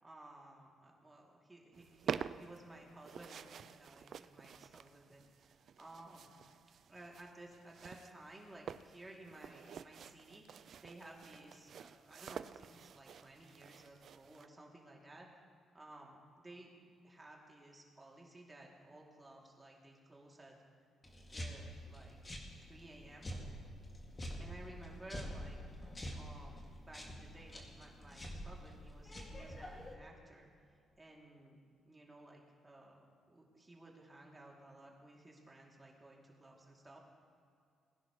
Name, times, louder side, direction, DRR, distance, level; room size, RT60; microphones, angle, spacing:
voice 1, 0.0-6.3 6.9-15.3 15.7-20.6 21.3-22.4 22.7-23.3 24.4-25.6 26.2-30.5 31.0-31.6 31.9-37.0, right 1 dB, 20° right, -2 dB, 2.7 m, -56 dB
sound 1, 1.7-14.5, right 8 dB, 60° right, 0.3 m, -48 dB
sound 2, 21.0-29.9, equal, 25° left, 2.2 m, -47 dB
20.5 x 10.5 x 3.1 m, 2.3 s
cardioid pair, 90°, 0 cm